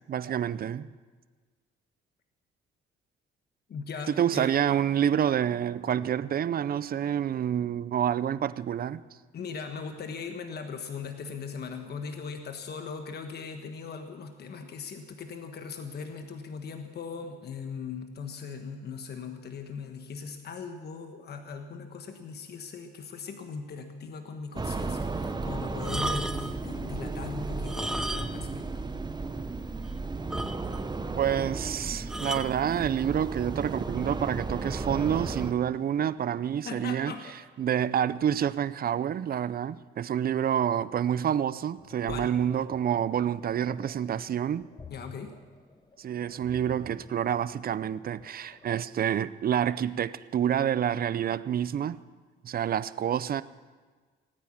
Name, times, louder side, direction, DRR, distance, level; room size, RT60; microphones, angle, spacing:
voice 1, 0.1-0.9 4.1-9.0 31.2-37.1 37.6-44.7 46.0-52.0 52.4-53.4, right 9 dB, 50° right, 0.6 m, -28 dB
voice 2, 3.7-4.6 9.3-28.9 36.6-37.3 42.1-42.4 44.9-45.4, left 5 dB, 55° left, 1.3 m, -39 dB
sound 1, 24.5-35.5, right 3 dB, 20° right, 0.9 m, -34 dB
sound 2, 25.8-26.6 27.6-28.6 28.8-29.0 29.5-29.6 29.8-29.9 30.3-31.0 32.1-32.6 33.4-33.7, right 1 dB, 5° right, 0.7 m, -34 dB
sound 3, 41.8-48.8, left 4 dB, 20° left, 0.9 m, -51 dB
17.5 x 9.5 x 7.2 m
cardioid pair, 90°, 20 cm